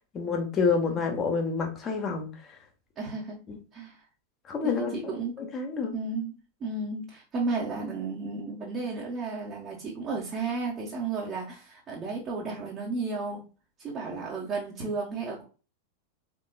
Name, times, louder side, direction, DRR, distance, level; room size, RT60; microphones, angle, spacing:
voice 1, 0.0-2.6 3.5-3.6 4.5-5.1 5.4-5.9, left 5 dB, 25° left, 4 dB, 1.1 m, -29 dB
voice 2, 3.0-3.4 3.7-4.0 4.6-5.4 5.9-13.4 13.8-15.4, right 3 dB, 30° right, -4 dB, 1.1 m, -33 dB
4.2 x 3.9 x 2.3 m, 0.34 s
figure-of-eight pair, 90°, 0 cm